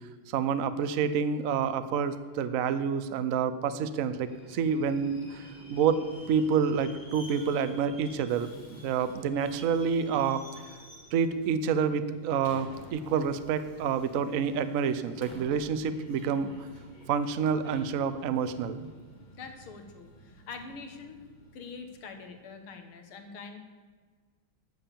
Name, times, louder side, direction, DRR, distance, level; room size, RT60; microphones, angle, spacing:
voice 1, 0.3-10.5 11.1-16.7 17.1-18.9, right 6 dB, 70° right, 12 dB, 0.8 m, -28 dB
Subway metro underground, 4.2-22.7, equal, 25° left, 1.8 m, -51 dB
voice 2, 19.3-21.2 21.5-23.6, left 5 dB, 85° left, 6 dB, 2.2 m, -44 dB
12.5 x 7.1 x 7.4 m, 1.5 s
omnidirectional pair, 2.3 m